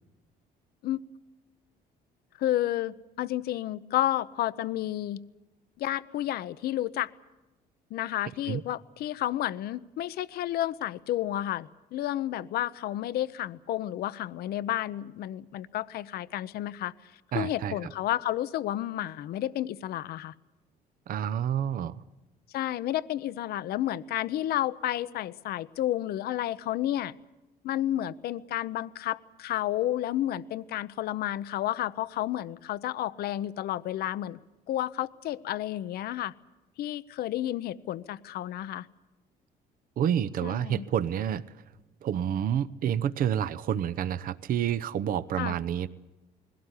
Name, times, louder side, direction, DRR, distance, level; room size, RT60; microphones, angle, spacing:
voice 1, 2.4-5.2 5.8-7.1 7.9-16.9 17.3-20.3 22.5-27.1 27.6-34.4 34.7-36.3 36.8-38.9 40.4-40.9 45.4-45.5, left 13 dB, 70° left, 15 dB, 0.7 m, -31 dB
voice 2, 17.3-17.9 21.1-22.0 40.0-41.4 42.0-45.9, right 9 dB, 55° right, 15 dB, 0.8 m, -29 dB
21.0 x 17.0 x 9.8 m, 1.0 s
cardioid pair, 110°, 17 cm